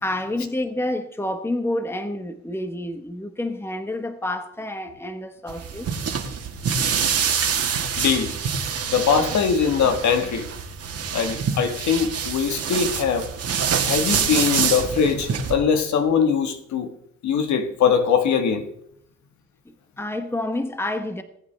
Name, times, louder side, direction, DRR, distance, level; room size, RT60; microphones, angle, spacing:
voice 1, 0.0-5.9 19.6-21.2, left 1 dB, 10° left, 1.2 m, -29 dB
sound 1, 5.5-15.5, right 6 dB, 55° right, 1.8 m, -26 dB
voice 2, 8.0-8.3 8.9-10.5 11.1-13.3 13.8-16.9 17.2-18.7, left 6 dB, 70° left, 1.6 m, -21 dB
20.0 x 8.8 x 3.4 m
cardioid pair, 90°, 30 cm